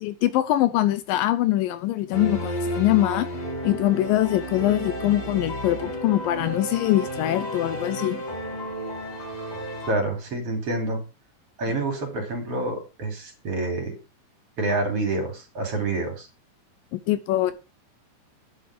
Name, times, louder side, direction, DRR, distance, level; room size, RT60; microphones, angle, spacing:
voice 1, 0.0-3.3 3.6-8.2 16.9-17.5, left 14 dB, 80° left, 2.4 m, -23 dB
sound 1, 2.1-9.9, equal, 50° left, 5.9 m, -32 dB
voice 2, 9.9-11.0 11.6-14.0 14.6-16.3, right 2 dB, 45° right, 3.7 m, -27 dB
11.5 x 9.9 x 4.9 m
omnidirectional pair, 4.0 m